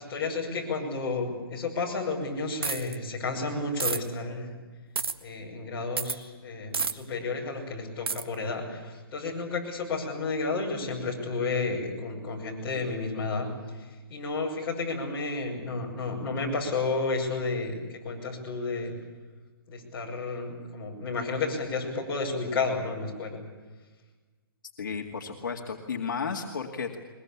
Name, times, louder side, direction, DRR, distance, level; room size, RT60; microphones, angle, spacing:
voice 1, 0.0-4.6 5.2-13.5 13.7-17.8 18.0-19.0 19.7-23.4, left 3 dB, 15° left, -5 dB, 5.8 m, -31 dB
sound 1, 2.6-3.0 3.8-4.0 5.0-5.1 6.0-6.2 6.7-6.9 8.1-8.2, right 5 dB, 80° right, 1.7 m, -29 dB
voice 2, 24.8-27.0, left 5 dB, 55° left, 1 dB, 2.3 m, -33 dB
22.5 x 21.5 x 8.6 m, 1.3 s
hypercardioid pair, 175°, 12 cm